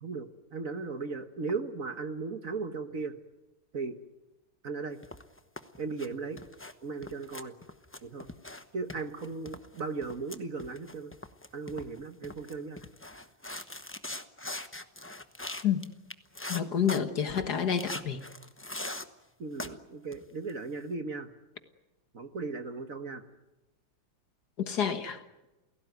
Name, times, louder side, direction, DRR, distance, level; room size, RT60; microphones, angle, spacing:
voice 1, 0.0-3.2 3.7-4.0 4.6-5.0 5.8-6.4 6.8-7.5 8.0-8.3 8.7-11.1 11.5-12.8 19.4-21.3 22.1-23.2, right 4 dB, 45° right, 1.5 m, -37 dB
sound 1, 5.0-6.1 6.4-6.7 7.0-8.6 8.9-17.0 17.4-17.5 17.8-19.1 19.6-19.7 20.1-20.5, left 1 dB, 15° left, 0.5 m, -41 dB
voice 2, 16.5-18.2 24.6-25.2, left 8 dB, 55° left, 1.9 m, -29 dB
29.0 x 17.0 x 9.4 m
omnidirectional pair, 2.2 m